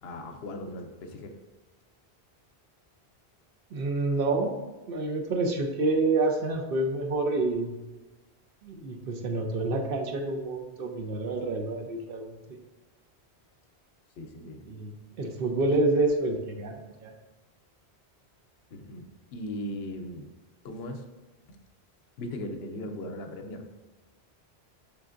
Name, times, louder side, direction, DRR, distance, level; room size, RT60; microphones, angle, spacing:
voice 1, 0.0-1.4 14.2-14.6 18.7-20.3 20.6-21.0 21.5-21.6 22.2-23.7, left 1 dB, 75° left, 5 dB, 0.8 m, -38 dB
voice 2, 3.7-4.6 4.9-7.7 8.6-12.6 14.6-17.1, right 2 dB, 65° right, 3 dB, 0.7 m, -28 dB
6.0 x 3.3 x 2.5 m, 1.2 s
omnidirectional pair, 1.1 m